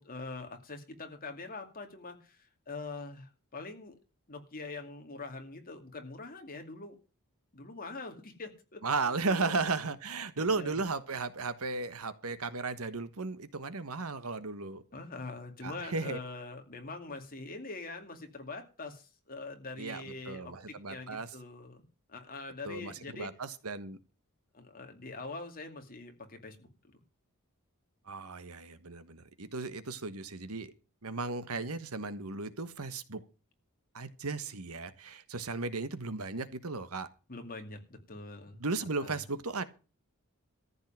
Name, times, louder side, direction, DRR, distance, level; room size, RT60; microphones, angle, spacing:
voice 1, 0.0-3.9 4.3-7.0 7.5-8.8 9.2-9.6 10.6-10.8 14.9-23.3 24.5-26.7 31.5-31.7 37.3-38.6 39.0-39.2, left 3 dB, 40° left, 2.5 m, -44 dB
voice 2, 8.8-14.8 15.6-16.2 19.8-21.3 22.6-24.0 28.1-30.7 31.0-33.2 33.9-37.1 38.6-39.6, right 3 dB, 75° right, 1.3 m, -35 dB
14.0 x 5.5 x 9.1 m
head